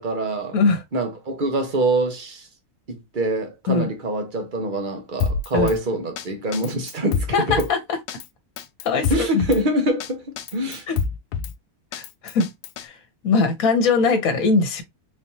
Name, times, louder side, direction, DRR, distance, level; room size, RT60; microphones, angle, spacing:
voice 1, 0.0-0.6 0.9-2.5 2.9-7.7 9.1-10.2 10.5-10.9, right 1 dB, 35° right, 1.0 m, -24 dB
Drum kit, 5.2-5.8 6.2-6.3 6.5-7.7 8.1-8.3 8.6-9.6 10.0-10.1 10.4-11.5 11.9-12.9, left 6 dB, 80° left, 1.1 m, -27 dB
voice 2, 7.3-7.8 8.8-9.4 10.9-11.0 11.9-12.5 12.8-12.9 13.2-14.8, left 4 dB, 60° left, 1.3 m, -21 dB
4.1 x 3.2 x 2.7 m
omnidirectional pair, 1.7 m